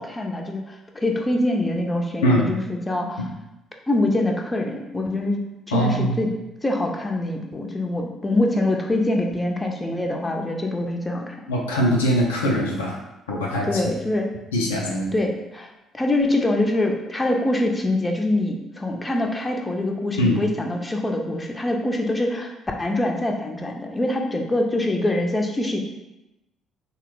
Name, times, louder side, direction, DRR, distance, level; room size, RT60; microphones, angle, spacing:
voice 1, 0.0-3.2 3.9-5.4 5.7-6.3 6.6-11.4 13.6-14.3 15.1-15.7 15.9-22.5 22.8-25.8, left 1 dB, 20° left, 2 dB, 0.5 m, -24 dB
voice 2, 5.7-6.2 11.5-13.0 13.3-13.9 14.5-15.1 20.2-20.4, equal, 80° left, -2 dB, 0.4 m, -22 dB
3.5 x 2.1 x 3.0 m, 0.95 s
figure-of-eight pair, 45°, 0 cm